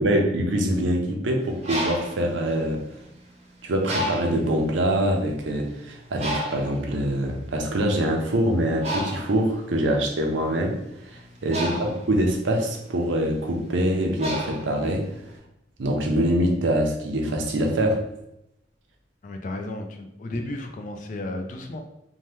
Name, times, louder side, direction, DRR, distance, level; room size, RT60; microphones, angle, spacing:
voice 1, 0.0-2.8 3.6-10.8 11.0-11.7 12.1-15.1 15.8-18.0, right 1 dB, 90° right, 2 dB, 0.6 m, -24 dB
Bird, 1.4-3.3 3.8-4.5 5.2-5.3 5.6-15.3, equal, 35° right, 0.6 m, -32 dB
voice 2, 19.2-21.8, left 2 dB, 45° left, 5 dB, 0.3 m, -33 dB
2.8 x 2.2 x 3.2 m, 0.81 s
head